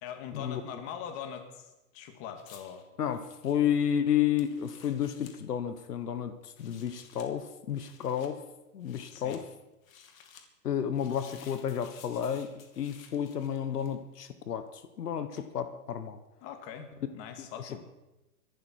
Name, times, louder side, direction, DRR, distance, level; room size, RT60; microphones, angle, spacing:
voice 1, 0.0-2.9 9.1-9.4 16.4-17.9, left 8 dB, 30° left, 6 dB, 2.3 m, -42 dB
sound 1, 2.4-5.4 6.4-7.3 7.7-8.3 8.8-9.4 9.8-10.5 10.9-14.1 15.4-15.5, left 7 dB, 60° left, 2.7 m, -55 dB
voice 2, 3.0-8.5 8.7-9.5 10.6-16.2 17.6-17.9, left 9 dB, 80° left, 10 dB, 1.4 m, -31 dB
24.0 x 12.0 x 4.6 m, 1.0 s
hypercardioid pair, 140°, 46 cm